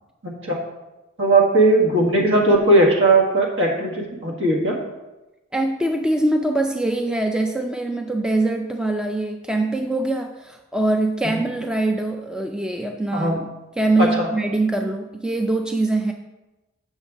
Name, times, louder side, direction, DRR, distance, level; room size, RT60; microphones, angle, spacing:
voice 1, 0.2-0.6 1.2-4.7 11.3-11.4 13.1-13.4 14.0-14.3, right 2 dB, 60° right, -1 dB, 1.7 m, -18 dB
voice 2, 5.5-13.5 13.8-16.1, right 2 dB, 5° right, 4 dB, 0.3 m, -23 dB
7.5 x 6.4 x 3.6 m, 1.1 s
head